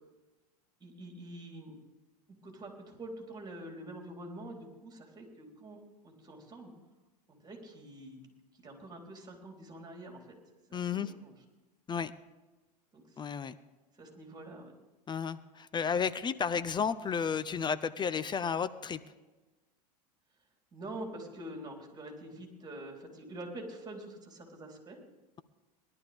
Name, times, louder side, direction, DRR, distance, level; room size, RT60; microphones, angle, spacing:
voice 1, 0.8-1.8 2.4-6.7 7.3-8.2 8.6-10.4 10.7-11.3 12.9-13.2 14.0-14.7 20.7-25.0, right 1 dB, 20° right, 0 dB, 3.7 m, -46 dB
voice 2, 10.7-11.1 11.9-12.1 13.2-13.6 15.1-19.0, left 6 dB, 20° left, 14 dB, 0.6 m, -32 dB
20.0 x 11.5 x 3.5 m, 1.1 s
hypercardioid pair, 90°, 20 cm